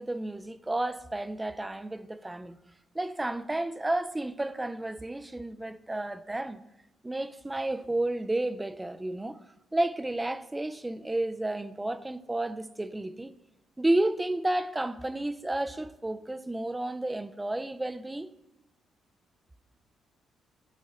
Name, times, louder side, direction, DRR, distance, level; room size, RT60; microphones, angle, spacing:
voice 1, 0.0-2.6 2.9-6.6 7.0-9.4 9.7-13.3 13.8-18.3, right 1 dB, 15° right, 0.4 m, -31 dB
11.5 x 4.1 x 3.7 m
cardioid pair, 90°, 0 cm